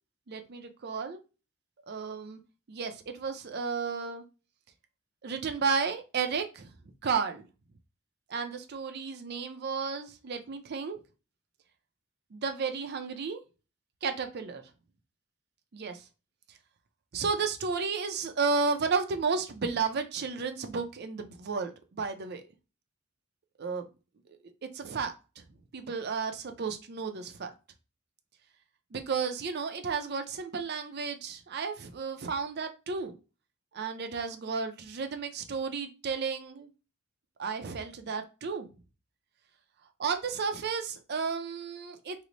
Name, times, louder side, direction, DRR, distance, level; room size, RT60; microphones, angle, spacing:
voice 1, 0.3-1.2 1.9-2.4 2.7-4.2 5.2-6.7 7.0-7.5 8.3-11.0 12.3-13.4 14.0-14.6 15.7-16.0 17.1-22.4 23.6-23.9 24.7-25.1 25.7-27.5 28.9-33.2 33.7-36.7 37.4-38.7 40.0-42.2, right 5 dB, 50° right, 0.5 m, -33 dB
3.9 x 2.0 x 3.1 m
head